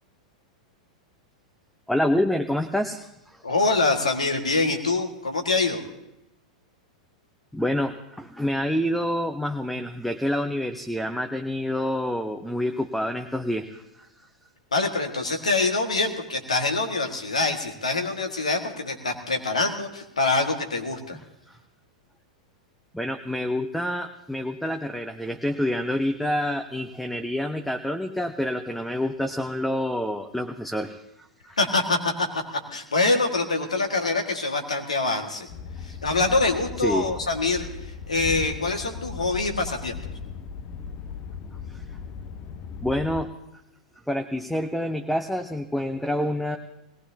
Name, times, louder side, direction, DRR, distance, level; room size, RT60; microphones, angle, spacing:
voice 1, 1.9-3.4 7.5-14.1 21.5-21.6 22.9-31.6 35.9-36.0 36.8-37.1 41.7-41.8 42.8-43.3 44.1-46.6, left 1 dB, ahead, 6 dB, 0.7 m, -27 dB
voice 2, 3.4-5.8 14.7-21.2 31.6-35.5 35.8-40.0, left 3 dB, 75° left, 3 dB, 1.8 m, -25 dB
sound 1, 35.5-43.2, left 6 dB, 40° left, 0.8 m, -37 dB
21.0 x 18.0 x 2.8 m, 0.86 s
figure-of-eight pair, 95°, 4 cm